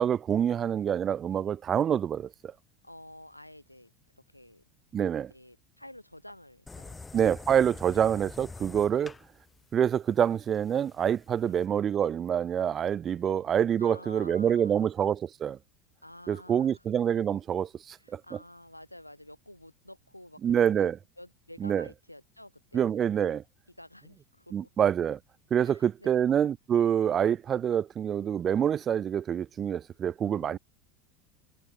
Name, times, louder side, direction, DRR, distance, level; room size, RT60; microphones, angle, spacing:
voice 1, 0.0-2.5 4.9-5.3 7.1-9.1 9.7-15.6 16.3-18.2 20.4-21.0 21.6-21.8 22.7-23.4 24.5-25.2 25.5-30.6, right 9 dB, 30° right, 0.5 m, -26 dB
voice 2, 2.8-3.9 4.3-4.6 5.1-7.1 7.9-8.0 8.9-9.1 11.4-11.6 13.2-13.4 13.8-14.9 16.0-16.8 17.9-20.9 21.2-23.3 23.8-24.7 25.6-26.3 30.2-30.6, left 1 dB, 90° left, 2.1 m, -50 dB
sound 1, 6.7-11.7, left 3 dB, 15° left, 0.7 m, -46 dB
figure-of-eight pair, 75°, 0 cm